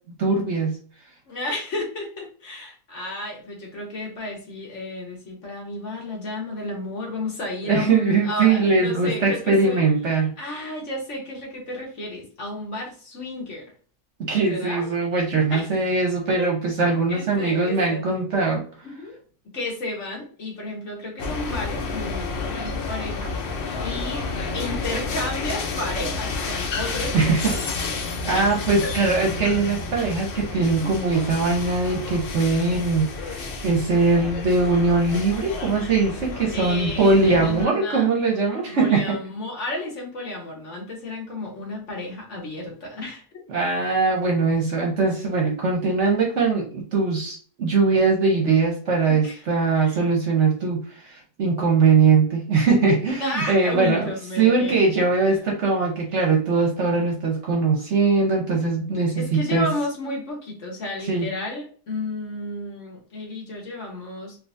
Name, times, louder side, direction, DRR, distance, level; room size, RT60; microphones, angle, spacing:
voice 1, 0.2-0.7 7.6-10.3 14.2-18.6 27.1-27.5 28.2-39.2 43.5-54.1 54.4-59.7 61.1-61.3, right 4 dB, 55° right, 0 dB, 0.9 m, -21 dB
voice 2, 1.3-9.8 10.4-13.6 14.5-15.0 15.5-15.7 16.4-16.5 17.1-18.0 18.8-19.2 19.5-24.3 24.5-27.1 27.5-27.8 28.3-28.5 28.8-28.9 30.8-31.1 36.5-38.1 38.7-43.4 49.0-49.4 49.7-50.0 53.2-54.8 59.2-64.4, left 2 dB, 50° left, -1 dB, 1.3 m, -32 dB
sound 1, 21.2-37.6, left 3 dB, 80° left, 0.5 m, -30 dB
3.7 x 2.6 x 2.5 m, 0.42 s
omnidirectional pair, 1.7 m